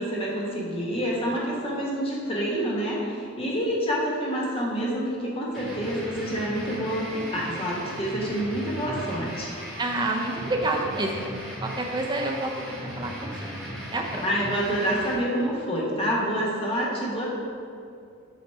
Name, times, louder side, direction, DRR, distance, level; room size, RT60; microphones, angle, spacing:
voice 1, 0.0-9.5 14.2-17.3, equal, 25° left, -4 dB, 1.0 m, -27 dB
sound 1, 5.5-15.1, equal, ahead, 1.5 m, -37 dB
voice 2, 9.8-11.3 11.6-12.5 12.8-13.6 13.9-14.2, right 2 dB, 20° right, 1 dB, 0.5 m, -28 dB
7.3 x 3.1 x 4.3 m, 2.4 s
head